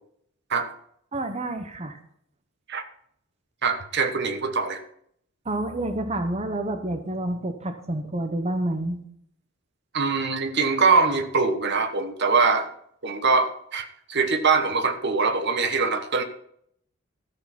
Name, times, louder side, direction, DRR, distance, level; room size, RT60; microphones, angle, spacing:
voice 1, 1.1-2.0 5.4-9.0, right 1 dB, 30° right, 6 dB, 1.0 m, -29 dB
voice 2, 3.6-4.8 9.9-12.7 13.0-16.2, right 4 dB, 55° right, 8 dB, 1.2 m, -23 dB
13.5 x 6.7 x 5.9 m, 0.68 s
head